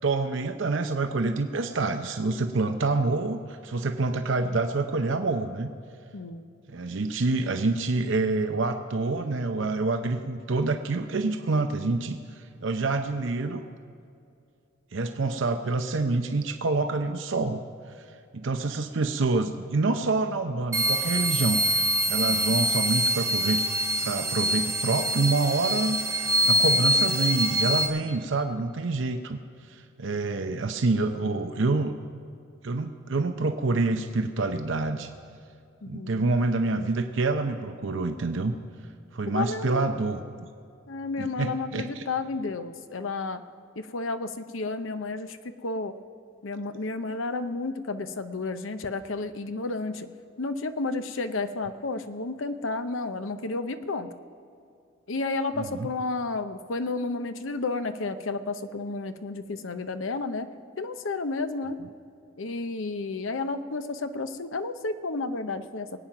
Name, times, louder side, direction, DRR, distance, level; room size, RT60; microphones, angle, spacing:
voice 1, 0.0-5.7 6.7-13.7 14.9-17.6 17.9-18.0 18.3-23.6 24.0-29.4 29.7-32.0 32.6-35.1 35.9-38.5 39.1-40.2 41.2-42.0 55.6-55.9, right 3 dB, 70° right, 7 dB, 0.7 m, -27 dB
voice 2, 6.1-6.4 22.3-22.6 35.8-36.2 39.3-39.9 40.9-43.4 43.8-45.9 46.4-50.1 50.4-54.1 55.1-60.5 60.8-61.8 62.4-66.0, left 3 dB, 80° left, 9 dB, 0.8 m, -32 dB
sound 1, 20.7-27.9, right 1 dB, 15° right, 1.4 m, -25 dB
21.0 x 9.0 x 5.9 m, 2.5 s
head